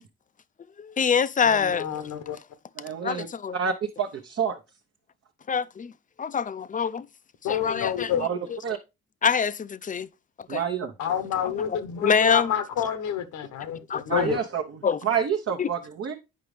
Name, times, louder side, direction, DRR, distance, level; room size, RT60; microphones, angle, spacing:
voice 1, 0.8-2.0 3.0-3.6 5.5-5.9 6.2-7.1 7.5-8.6 9.2-10.1 10.5-10.6 11.7-12.5 13.9-14.3 14.8-15.1 15.6-15.7, left 6 dB, 25° left, 0.4 m, -25 dB
voice 2, 1.4-2.4 7.4-8.2 11.0-14.4, left 9 dB, 80° left, 1.0 m, -29 dB
voice 3, 2.8-3.3 3.5-4.6 8.2-8.4 8.6-8.8 10.5-10.9 14.1-14.6 15.0-16.1, right 7 dB, 50° right, 0.9 m, -28 dB
8.5 x 5.1 x 3.2 m
cardioid pair, 90°, 30 cm